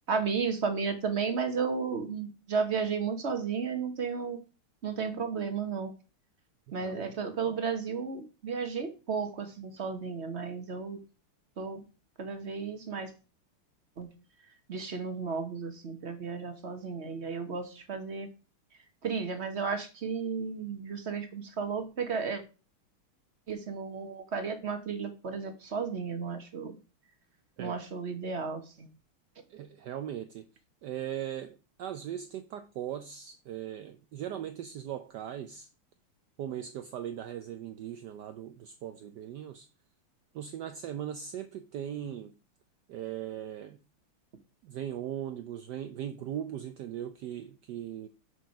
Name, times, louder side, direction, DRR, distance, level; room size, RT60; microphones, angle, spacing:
voice 1, 0.1-4.4 4.8-5.9 6.7-11.0 11.6-11.8 12.2-13.1 14.0-14.1 14.7-18.3 19.0-22.4 23.5-26.7 27.6-28.9, right 5 dB, 45° right, 0.9 m, -33 dB
voice 2, 6.8-7.2 27.6-27.8 29.5-30.5 30.8-35.7 36.4-39.7 40.3-42.3 42.9-43.8 44.6-48.1, right 10 dB, 75° right, 0.9 m, -39 dB
6.8 x 4.6 x 5.8 m
omnidirectional pair, 2.4 m